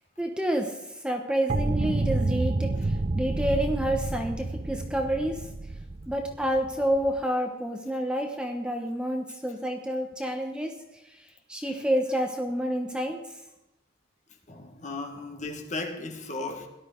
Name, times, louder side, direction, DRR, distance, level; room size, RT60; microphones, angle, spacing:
voice 1, 0.2-0.8 1.0-5.4 6.1-10.7 11.0-11.1 11.5-13.2, equal, 5° right, 1.1 m, -29 dB
submarine sonar, 1.5-7.2, right 2 dB, 35° right, 0.5 m, -29 dB
voice 2, 14.5-16.7, left 3 dB, 40° left, 1.7 m, -35 dB
18.0 x 12.0 x 3.9 m
head